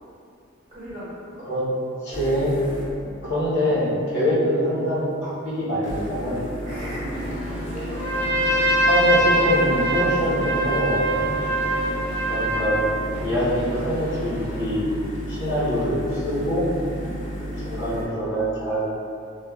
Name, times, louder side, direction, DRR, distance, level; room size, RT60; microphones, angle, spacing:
voice 1, 0.7-1.4 3.6-3.7 4.1-4.3 6.6-7.9 11.5-12.3 15.3-15.6 16.9-17.3, right 1 dB, 20° right, -12 dB, 1.0 m, -38 dB
voice 2, 2.0-2.6 3.2-6.3 8.1-8.2 8.8-11.1 12.3-12.9 13.2-14.9 15.3-16.7 17.6-18.9, equal, 60° left, -9 dB, 0.8 m, -24 dB
sound 1, 2.1-3.1 5.8-18.1, equal, 35° left, 0.4 m, -33 dB
sound 2, 7.1-15.1, equal, 80° left, 1.5 m, -38 dB
Trumpet, 7.9-13.0, right 1 dB, 10° left, 0.9 m, -23 dB
3.3 x 2.2 x 2.2 m, 2.5 s
head